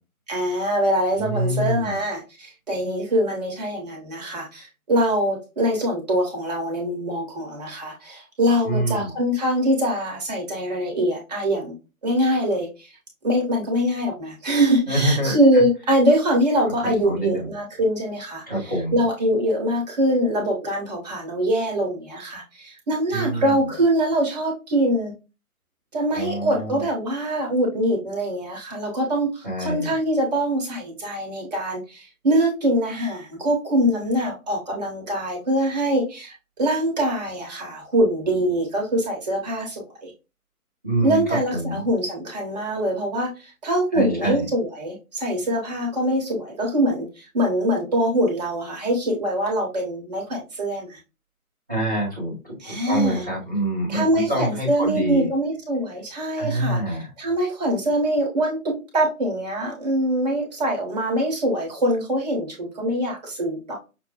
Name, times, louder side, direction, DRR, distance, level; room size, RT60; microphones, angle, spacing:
voice 1, 0.3-11.7 12.0-12.9 13.2-18.4 18.9-25.1 25.9-40.1 41.0-51.0 52.6-53.2 53.9-58.6 58.9-63.7, right 1 dB, 30° right, -1 dB, 1.3 m, -23 dB
voice 2, 1.2-2.0 8.6-9.1 14.9-15.6 16.6-16.7 17.0-17.5 18.5-19.0 23.1-23.5 26.1-26.8 29.4-29.9 40.8-41.8 43.9-44.4 51.7-55.3 56.4-57.1, right 1 dB, 10° right, -14 dB, 0.6 m, -26 dB
6.0 x 2.2 x 2.9 m, 0.30 s
figure-of-eight pair, 145°, 44 cm